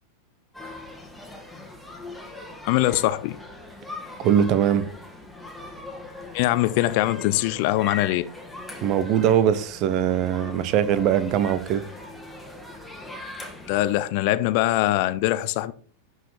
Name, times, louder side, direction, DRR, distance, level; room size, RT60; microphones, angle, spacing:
sound 1, 0.5-14.0, left 2 dB, ahead, 1.9 m, -40 dB
voice 1, 2.6-3.4 6.3-8.2 13.7-15.7, left 16 dB, 45° left, 0.6 m, -22 dB
voice 2, 4.2-4.9 8.8-11.9, right 9 dB, 40° right, 0.8 m, -21 dB
11.5 x 4.9 x 4.3 m
figure-of-eight pair, 90°, 0 cm